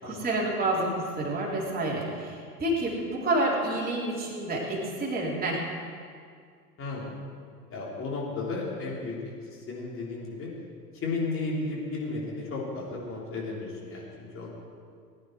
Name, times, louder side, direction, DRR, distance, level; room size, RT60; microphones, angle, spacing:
voice 1, 0.0-5.6, right 1 dB, 20° right, -4 dB, 3.7 m, -29 dB
voice 2, 7.7-10.5 10.9-14.5, left 3 dB, 25° left, -4 dB, 3.6 m, -34 dB
20.0 x 10.0 x 4.7 m, 2.2 s
figure-of-eight pair, 85°, 47 cm